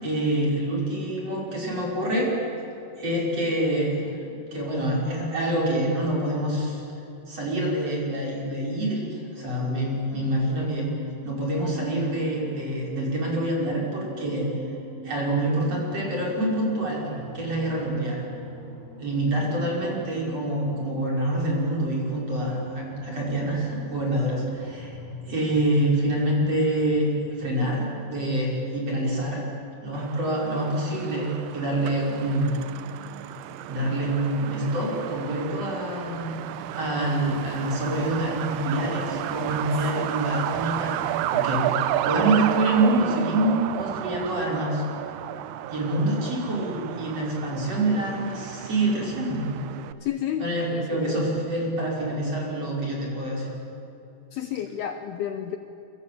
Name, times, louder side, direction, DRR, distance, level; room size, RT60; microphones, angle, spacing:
voice 1, 0.0-2.3 3.0-6.8 7.3-10.9 11.2-14.5 15.0-17.0 17.3-18.2 19.0-25.0 25.3-27.1 27.4-29.4 29.8-32.5 33.7-36.3 36.7-41.6 42.0-44.8 45.7-49.5 50.4-53.5, right 1 dB, 30° right, -3 dB, 6.4 m, -26 dB
sound 1, 9.0-27.4, right 3 dB, 10° left, 7.1 m, -43 dB
Truck, 29.9-49.9, right 13 dB, 85° right, 2.3 m, -32 dB
voice 2, 50.0-51.2 54.3-55.6, left 10 dB, 75° left, 7 dB, 2.3 m, -31 dB
27.5 x 25.0 x 8.6 m, 2.9 s
omnidirectional pair, 5.6 m